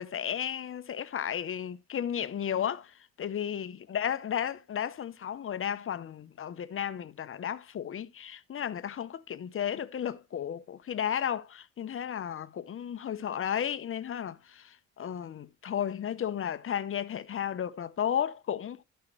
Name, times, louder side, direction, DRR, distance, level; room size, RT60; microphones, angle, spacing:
voice 1, 0.0-2.9 3.2-18.8, left 9 dB, 45° left, 0.8 m, -33 dB
12.5 x 5.9 x 3.1 m
cardioid pair, 90°, 30 cm